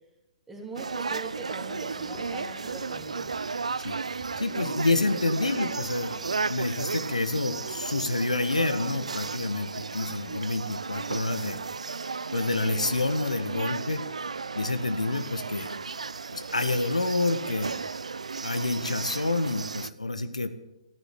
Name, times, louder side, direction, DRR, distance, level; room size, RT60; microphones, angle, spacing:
voice 1, 0.5-3.3, right 3 dB, 10° right, 0 dB, 3.2 m, -41 dB
sound 1, 0.8-19.9, right 4 dB, 75° right, 0.6 m, -34 dB
sound 2, 1.7-7.2, left 3 dB, 20° left, 3.4 m, -53 dB
voice 2, 4.4-11.6 12.3-14.1 14.5-15.7 16.3-17.7 18.4-20.5, left 2 dB, 85° left, 9 dB, 1.4 m, -28 dB
14.0 x 11.0 x 8.3 m, 0.93 s
figure-of-eight pair, 130°, 4 cm